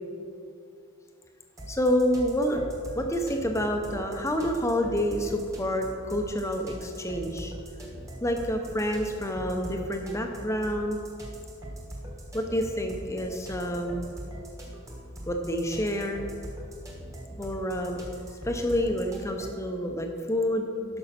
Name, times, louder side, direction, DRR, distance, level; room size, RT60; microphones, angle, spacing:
sound 1, 1.6-19.7, equal, 15° right, 1.3 m, -41 dB
voice 1, 1.7-2.6 2.9-7.5 8.2-11.0 12.3-14.1 15.3-16.2 17.4-18.0 18.3-20.7, equal, 15° left, 3 dB, 0.7 m, -28 dB
12.0 x 5.5 x 5.8 m, 2.4 s
head